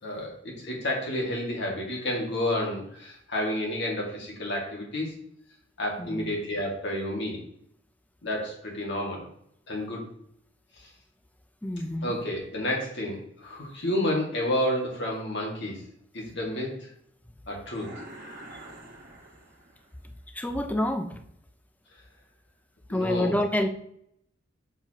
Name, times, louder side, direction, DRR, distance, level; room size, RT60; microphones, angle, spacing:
voice 1, 0.0-5.2 5.8-7.4 8.2-9.3 9.7-10.1 10.8-10.9 12.0-15.8 16.1-16.9 17.5-18.0 22.9-23.4, left 1 dB, 65° left, -1 dB, 2.1 m, -30 dB
voice 2, 6.0-6.3 11.6-12.2 20.3-21.2 22.9-23.7, left 1 dB, 10° left, 7 dB, 0.5 m, -27 dB
sound 1, 17.7-20.0, right 1 dB, 45° right, 1.5 m, -46 dB
6.8 x 5.7 x 3.0 m, 0.70 s
head